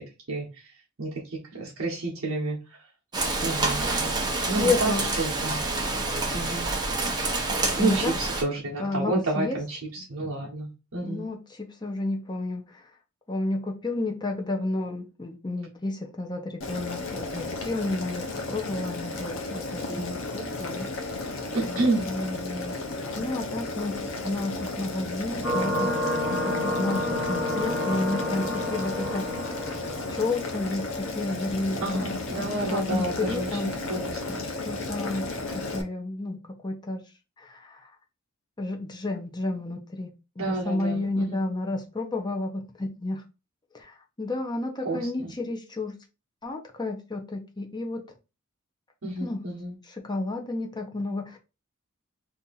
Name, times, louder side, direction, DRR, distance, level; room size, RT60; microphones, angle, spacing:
voice 1, 0.3-0.7 1.0-2.8 3.4-3.8 4.5-5.6 6.3-6.7 7.8-11.3 19.8-20.0 21.5-22.1 31.8-34.4 40.4-41.4 44.8-45.4 49.0-49.7, right 2 dB, 70° right, 0.8 m, -30 dB
Rain, 3.1-8.4, right 3 dB, 20° right, 0.7 m, -27 dB
voice 2, 4.2-5.1 7.8-8.1 8.8-9.6 11.0-12.9 13.3-21.2 21.6-22.8 23.2-29.3 30.1-32.0 32.7-33.7 34.6-35.3 35.5-37.0 37.4-37.9 38.6-43.2 43.7-45.9 46.4-48.0 49.2-49.4 50.0-51.4, left 2 dB, 20° left, 0.6 m, -31 dB
Boiling, 16.6-35.8, left 2 dB, 65° left, 0.7 m, -34 dB
sound 1, 25.4-30.7, left 1 dB, 5° right, 1.1 m, -29 dB
2.8 x 2.5 x 3.8 m
head